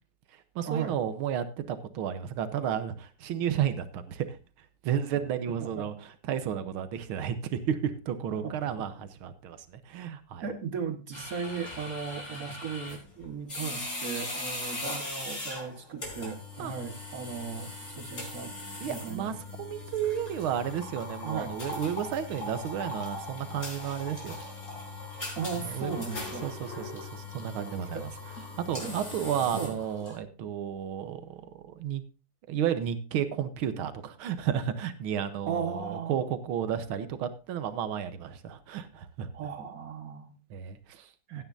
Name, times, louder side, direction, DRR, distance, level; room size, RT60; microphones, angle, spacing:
voice 1, 0.3-4.4 4.8-10.5 16.6-16.7 18.8-24.4 25.7-26.0 26.4-28.1 28.7-32.0 32.5-39.3 40.5-41.4, right 9 dB, 80° right, 11 dB, 1.8 m, -32 dB
voice 2, 8.3-8.9 10.4-18.5 18.8-19.3 21.2-21.6 25.4-26.5 27.9-28.1 28.8-29.0 29.5-29.7 35.5-36.2 39.3-40.4 41.3-41.4, right 6 dB, 45° right, 7 dB, 1.8 m, -36 dB
sound 1, 11.1-30.2, left 2 dB, 35° left, 4.2 m, -39 dB
16.5 x 9.6 x 2.6 m, 0.31 s
omnidirectional pair, 2.3 m